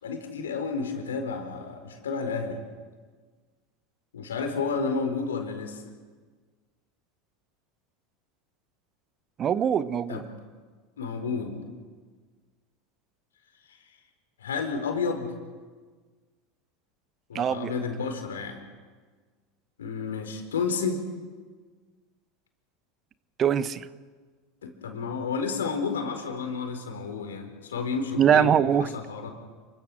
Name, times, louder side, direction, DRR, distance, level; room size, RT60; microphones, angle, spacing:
voice 1, 0.0-2.6 4.1-5.9 10.1-10.3 11.0-11.6 14.4-15.3 17.3-18.6 19.8-21.0 24.6-29.3, left 5 dB, 80° left, 5 dB, 4.6 m, -31 dB
voice 2, 9.4-10.2 17.3-17.7 23.4-23.9 28.2-28.9, right 8 dB, 35° right, 14 dB, 1.1 m, -22 dB
30.0 x 23.0 x 6.4 m, 1.5 s
hypercardioid pair, 80°, 0 cm